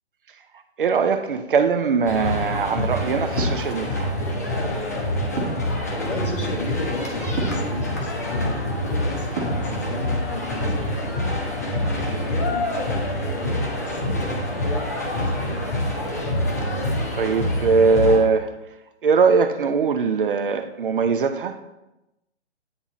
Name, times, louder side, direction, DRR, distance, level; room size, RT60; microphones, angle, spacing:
voice 1, 0.8-4.1 17.1-18.5 19.0-21.6, right 5 dB, 50° right, 8 dB, 0.5 m, -21 dB
sound 1, 2.0-18.2, left 1 dB, 15° left, 0.4 m, -26 dB
sound 2, 3.4-3.7 5.4-5.7 7.4-7.7 9.4-9.7, right 4 dB, 30° right, 1.4 m, -28 dB
voice 2, 5.9-15.9, left 2 dB, 50° left, 1 dB, 1.7 m, -35 dB
8.7 x 3.6 x 4.1 m, 0.94 s
figure-of-eight pair, 140°, 34 cm